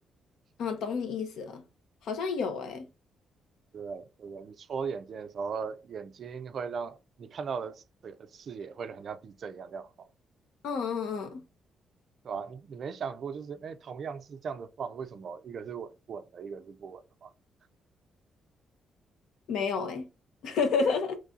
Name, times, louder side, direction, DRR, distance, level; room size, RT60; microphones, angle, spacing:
voice 1, 0.6-1.6 2.0-2.9 10.6-11.4 19.5-20.1 20.4-21.2, left 5 dB, 85° left, 0.7 m, -30 dB
voice 2, 3.7-10.1 12.2-17.3, right 6 dB, 45° right, 0.3 m, -38 dB
3.1 x 2.6 x 3.6 m
cardioid pair, 155°, 0 cm